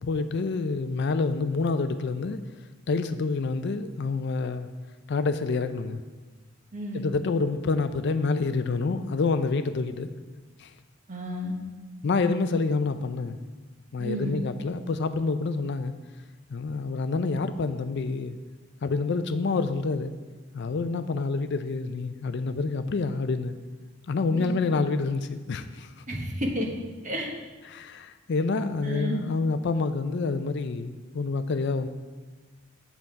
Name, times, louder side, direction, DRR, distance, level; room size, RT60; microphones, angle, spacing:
voice 1, 0.0-2.4 2.9-4.7 5.1-6.0 6.9-10.1 10.6-10.7 12.0-13.4 13.9-15.9 16.5-18.4 18.8-20.1 20.5-23.5 24.1-26.0 27.7-31.9, left 4 dB, 60° left, 10 dB, 0.5 m, -27 dB
voice 2, 6.7-7.0 11.1-11.5 14.0-14.4 24.3-24.5 26.1-26.7 27.0-27.3 28.8-29.2, equal, 40° right, 1 dB, 1.3 m, -31 dB
7.6 x 7.0 x 4.6 m, 1.3 s
head